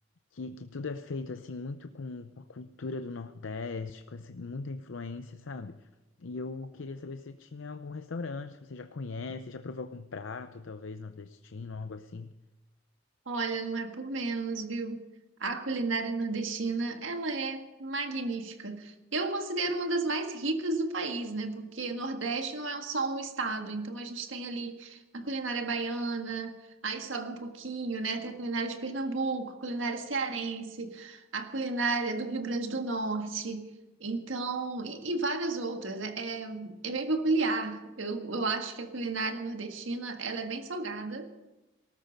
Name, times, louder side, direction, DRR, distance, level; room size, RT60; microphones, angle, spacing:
voice 1, 0.3-5.9 6.2-12.3, left 3 dB, 75° left, 9 dB, 0.6 m, -39 dB
voice 2, 13.3-15.0 15.4-33.7 34.0-41.4, right 3 dB, 75° right, 6 dB, 1.7 m, -33 dB
18.5 x 13.5 x 5.2 m, 1.0 s
head